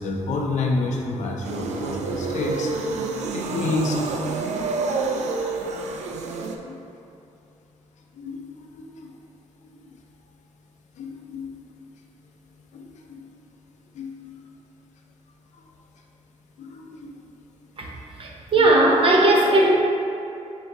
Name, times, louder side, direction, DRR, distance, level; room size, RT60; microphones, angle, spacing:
voice 1, 0.0-2.7 3.2-4.2 5.7-5.8 6.2-6.3 6.7-6.8 8.2-9.2 9.6-9.9 11.0-11.5 12.7-13.3 13.9-14.4 15.5-15.6 16.6-17.1, left 3 dB, 70° left, 1 dB, 0.5 m, -30 dB
sound 1, 1.4-6.6, right 3 dB, 65° right, 0.4 m, -28 dB
voice 2, 17.8-19.7, right 1 dB, 45° right, -2 dB, 0.7 m, -18 dB
4.4 x 2.5 x 3.9 m, 2.7 s
cardioid pair, 70°, 13 cm